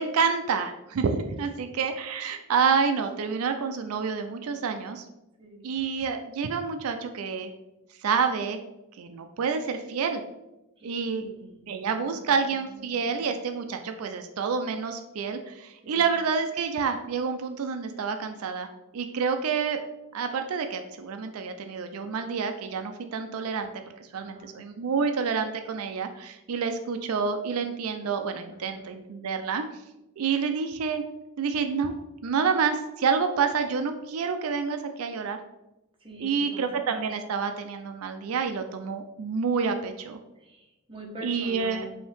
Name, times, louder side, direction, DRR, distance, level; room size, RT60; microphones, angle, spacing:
voice 1, 0.0-5.0 5.6-7.5 8.0-8.6 9.0-10.2 10.8-11.2 11.7-18.7 18.9-19.8 20.1-29.6 30.2-31.0 31.4-31.9 32.2-35.4 36.2-40.2 41.2-41.9, right 5 dB, 90° right, 7 dB, 0.4 m, -28 dB
voice 2, 10.8-11.6 11.9-13.3 15.8-16.1 24.1-24.6 28.5-28.9 36.0-36.7 40.3-41.9, right 1 dB, 25° right, -1 dB, 1.0 m, -45 dB
5.2 x 2.8 x 3.5 m, 0.93 s
head